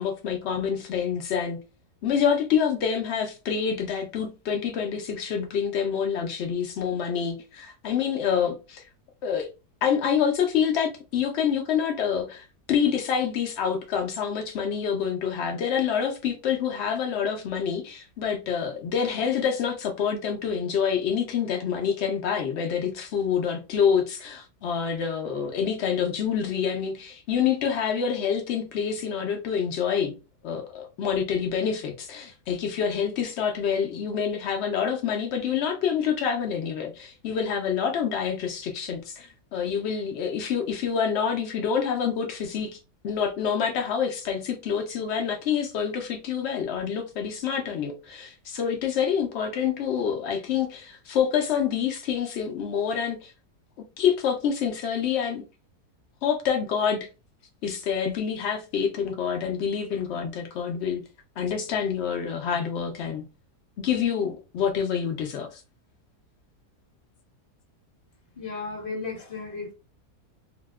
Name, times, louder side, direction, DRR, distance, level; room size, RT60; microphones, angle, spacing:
voice 1, 0.0-1.6 2.0-8.8 9.2-9.5 9.8-30.1 30.4-53.3 54.0-55.4 56.2-57.1 57.6-61.0 61.4-63.2 63.8-65.6, left 7 dB, 75° left, 0.6 m, -27 dB
voice 2, 68.4-69.7, left 4 dB, 35° left, 1.1 m, -34 dB
2.7 x 2.1 x 3.4 m
omnidirectional pair, 1.7 m